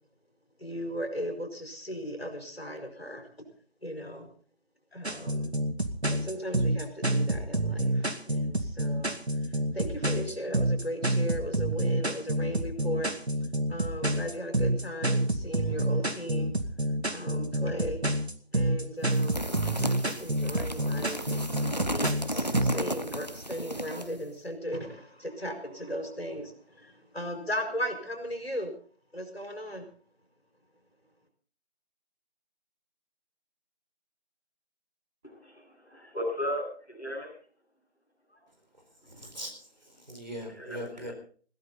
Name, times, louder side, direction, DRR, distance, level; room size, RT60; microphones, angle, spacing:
voice 1, 0.6-3.3 3.8-4.3 4.9-5.6 6.1-13.1 13.4-18.0 18.5-19.4 19.8-28.7 29.1-29.9, equal, 65° left, 5.0 m, -37 dB
sound 1, 5.0-22.7, right 1 dB, 80° right, 2.3 m, -28 dB
sound 2, 19.1-24.2, equal, 40° left, 0.7 m, -34 dB
voice 2, 35.2-37.3 40.6-41.1, left 1 dB, 5° right, 7.9 m, -36 dB
voice 3, 39.0-41.1, equal, 40° right, 4.6 m, -41 dB
21.5 x 15.5 x 4.0 m
figure-of-eight pair, 175°, 33 cm